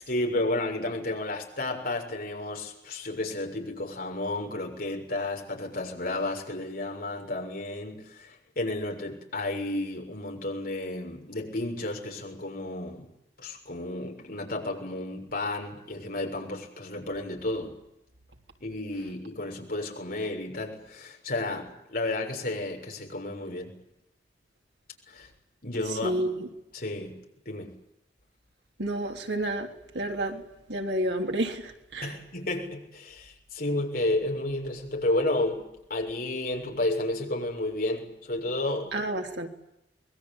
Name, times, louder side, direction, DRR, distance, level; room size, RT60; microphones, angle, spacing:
voice 1, 0.0-13.1 13.4-17.8 18.6-23.8 25.1-25.3 25.6-26.2 26.7-27.1 27.5-27.8 32.0-38.9, left 2 dB, 55° left, 2 dB, 6.9 m, -32 dB
voice 2, 26.0-26.5 28.8-29.7 29.9-30.4 30.7-32.2 38.9-39.5, right 1 dB, 75° right, 3 dB, 3.5 m, -30 dB
25.0 x 22.0 x 9.0 m, 0.84 s
head